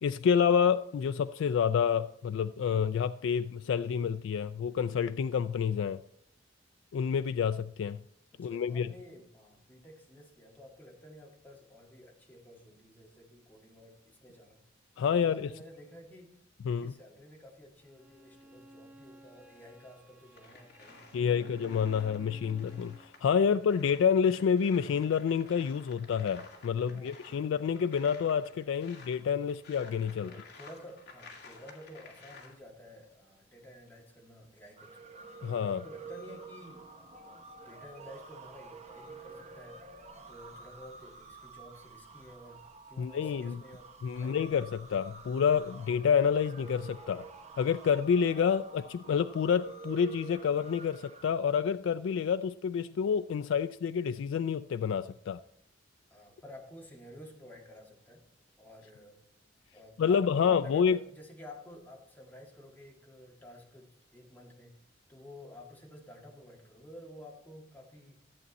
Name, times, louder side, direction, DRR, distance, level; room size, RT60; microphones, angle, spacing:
voice 1, 0.0-6.0 6.9-8.0 8.4-8.9 15.0-15.5 16.6-16.9 21.1-30.3 35.4-35.8 43.0-43.6 44.0-47.2 47.6-55.4 60.0-61.0, left 7 dB, 75° left, 0.3 m, -28 dB
voice 2, 8.4-14.6 15.0-16.3 16.6-21.4 22.0-22.5 26.8-27.5 30.2-35.1 35.6-39.8 40.3-42.6 42.9-43.9 44.2-44.6 56.1-58.2 58.6-59.2 59.7-64.7 65.1-68.2, left 1 dB, 10° left, 2.0 m, -52 dB
Bowed string instrument, 17.8-23.2, right 1 dB, 10° right, 0.8 m, -56 dB
sound 1, 20.4-32.5, left 3 dB, 60° left, 2.2 m, -54 dB
sound 2, 34.8-51.2, right 4 dB, 35° right, 0.9 m, -49 dB
13.5 x 8.0 x 4.2 m
head